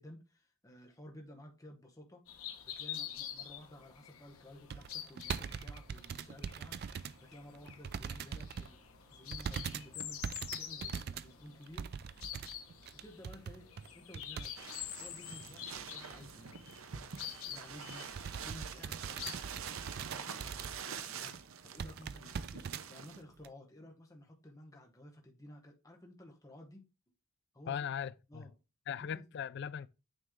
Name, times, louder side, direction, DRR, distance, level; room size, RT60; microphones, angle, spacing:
voice 1, 0.0-2.3 2.7-8.8 9.1-11.9 12.9-14.7 15.0-16.7 17.4-18.1 18.4-19.4 19.9-22.6 22.9-26.9 27.5-27.9 28.3-28.5 28.9-29.2, left 1 dB, 15° left, 1.0 m, -54 dB
sound 1, 2.3-19.6, left 10 dB, 90° left, 0.9 m, -47 dB
sound 2, 4.7-7.2 7.5-8.7 9.3-14.5 14.8-14.9 15.5-15.8 16.2-16.3 16.6-16.7 17.1-17.3 17.7-21.0 21.3-21.4 21.8-22.8 23.4-23.5, right 7 dB, 50° right, 0.3 m, -42 dB
sound 3, 14.6-23.2, right 7 dB, 75° right, 0.7 m, -46 dB
voice 2, 27.7-28.5 28.9-29.9, left 8 dB, 55° left, 0.3 m, -39 dB
9.0 x 3.3 x 3.6 m
head